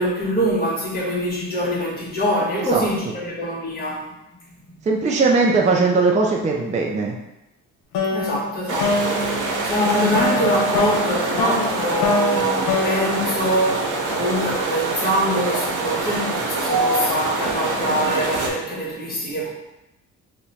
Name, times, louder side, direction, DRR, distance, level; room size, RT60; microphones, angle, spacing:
voice 1, 0.0-4.0 8.1-9.3 9.6-19.5, equal, 30° left, -5 dB, 1.3 m, -24 dB
voice 2, 2.5-2.8 4.8-7.1, right 3 dB, 25° right, 0 dB, 0.4 m, -19 dB
sound 1, 7.9-14.4, left 3 dB, 80° left, 0.7 m, -25 dB
sound 2, 8.7-18.5, right 3 dB, 80° right, 0.7 m, -25 dB
2.8 x 2.2 x 4.1 m, 0.92 s
cardioid pair, 90°, 30 cm